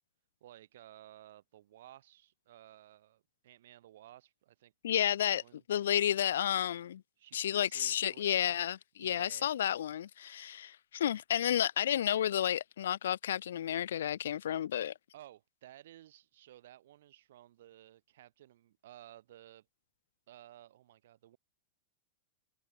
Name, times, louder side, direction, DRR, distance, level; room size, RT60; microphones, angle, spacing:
voice 1, 0.4-5.6 7.2-8.6 9.0-9.5 15.1-19.7 20.3-21.4, right 13 dB, 70° right, 6.4 m, -56 dB
voice 2, 4.8-5.4 5.7-7.0 7.3-14.9, left 10 dB, 85° left, 0.4 m, -31 dB
supercardioid pair, 140°, 0 cm